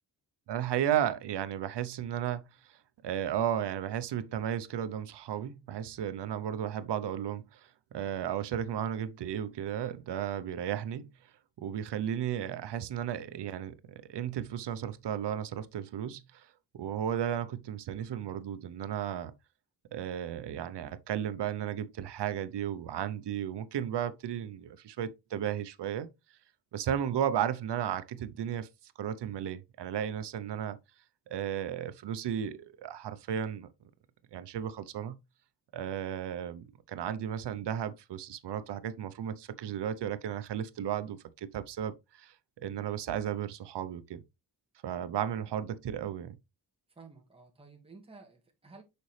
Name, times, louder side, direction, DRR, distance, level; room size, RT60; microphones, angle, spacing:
voice 1, 0.5-2.8 3.0-11.1 11.6-16.5 16.7-19.3 19.9-26.1 26.7-28.7 29.0-30.8 31.3-33.7 34.3-35.1 35.7-42.3 42.6-44.2 44.8-46.4, right 10 dB, 80° right, 0.8 m, -34 dB
voice 2, 46.9-48.8, right 4 dB, 15° right, 1.7 m, -53 dB
6.7 x 5.2 x 3.2 m
wide cardioid pair, 155°, 41 cm